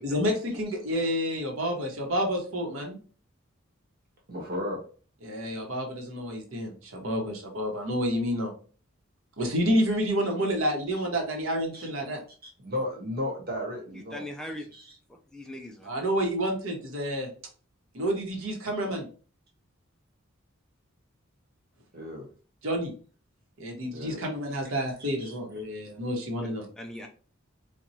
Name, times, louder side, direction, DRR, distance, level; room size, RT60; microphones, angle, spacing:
voice 1, 0.0-3.0 5.2-8.5 9.4-12.2 15.8-17.3 17.9-19.1 22.6-22.9 23.6-26.7, equal, 75° right, 2 dB, 1.0 m, -29 dB
voice 2, 4.3-4.8 11.7-11.9 12.6-14.2 14.7-14.8 21.9-22.3 23.9-24.2 24.5-24.6 25.0-25.6, left 1 dB, 45° right, 0 dB, 1.1 m, -34 dB
voice 3, 13.9-14.7 15.1-15.9 26.8-27.1, left 1 dB, 5° left, 1 dB, 0.3 m, -40 dB
4.3 x 2.3 x 2.6 m, 0.40 s
head